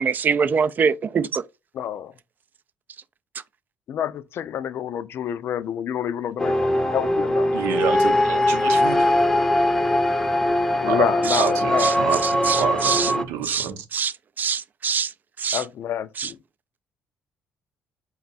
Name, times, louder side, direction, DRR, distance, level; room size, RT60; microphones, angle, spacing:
voice 1, 0.0-1.4 11.3-11.4 11.8-11.9 12.2-13.1 13.4-15.1 15.4-15.6 16.2-16.3, right 6 dB, 45° right, 0.4 m, -24 dB
voice 2, 1.7-2.1 3.9-7.5 10.8-12.0 15.5-16.4, left 9 dB, 60° left, 0.4 m, -28 dB
sound 1, 6.4-13.2, left 1 dB, 15° left, 0.6 m, -21 dB
voice 3, 7.5-9.0 10.9-11.0 11.4-11.7 12.0-13.8, right 8 dB, 85° right, 0.7 m, -28 dB
3.9 x 2.3 x 4.0 m
supercardioid pair, 75°, 4 cm